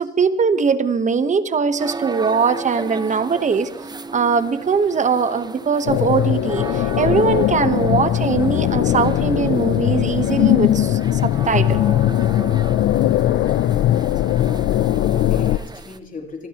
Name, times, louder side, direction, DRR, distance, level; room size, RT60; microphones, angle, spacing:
voice 1, 0.0-3.7 4.1-11.8, right 5 dB, 40° right, 12 dB, 1.1 m, -21 dB
sound 1, 1.8-16.0, right 4 dB, 20° right, 0.7 m, -35 dB
sound 2, 5.9-15.6, left 12 dB, 70° left, 0.5 m, -19 dB
voice 2, 14.2-16.5, left 3 dB, 40° left, 1 dB, 3.0 m, -37 dB
25.0 x 15.5 x 3.0 m, 1.2 s
cardioid pair, 90°, 20 cm